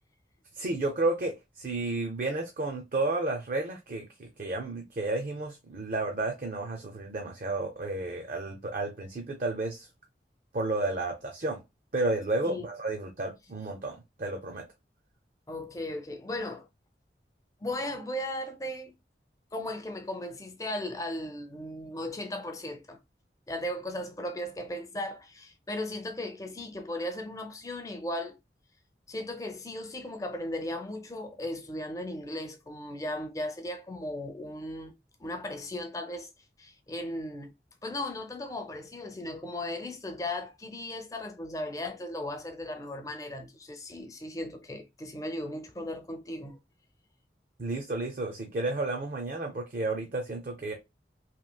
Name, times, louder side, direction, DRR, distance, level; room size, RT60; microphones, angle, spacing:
voice 1, 0.6-9.9 10.5-11.6 11.9-14.6 47.6-50.7, right 2 dB, 50° right, 0.5 m, -32 dB
voice 2, 15.5-16.7 17.6-18.9 19.5-23.0 23.5-28.4 29.1-34.9 35.2-36.3 36.6-37.5 37.8-46.6, left 1 dB, 20° left, 0.4 m, -36 dB
2.9 x 2.7 x 2.2 m
head